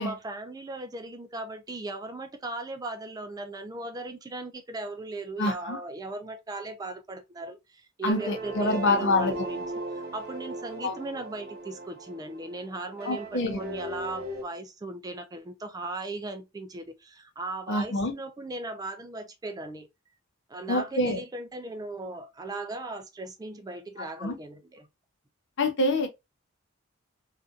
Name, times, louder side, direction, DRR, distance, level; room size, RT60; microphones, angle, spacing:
voice 1, 0.0-9.6 9.9-19.9 20.5-24.9, right 2 dB, 20° right, 0.3 m, -38 dB
voice 2, 5.4-5.8 8.0-9.3 10.8-11.0 13.0-13.6 17.7-18.1 20.7-21.2 24.0-24.3 25.6-26.1, left 2 dB, 65° left, 0.6 m, -26 dB
sound 1, 8.1-14.4, right 2 dB, 50° right, 0.8 m, -37 dB
2.6 x 2.4 x 2.3 m
head